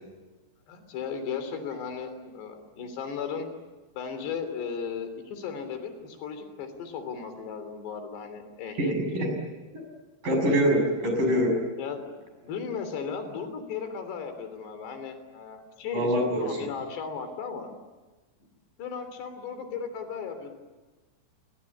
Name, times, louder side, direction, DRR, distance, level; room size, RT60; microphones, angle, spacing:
voice 1, 0.7-3.5 4.0-8.9 9.2-9.3 11.8-12.1 12.4-17.7 18.8-20.5, left 6 dB, 80° left, 8 dB, 5.4 m, -36 dB
voice 2, 8.8-9.3 10.2-11.6 15.9-16.7, equal, 50° right, 3 dB, 8.4 m, -24 dB
27.5 x 24.0 x 8.6 m, 1.2 s
omnidirectional pair, 4.8 m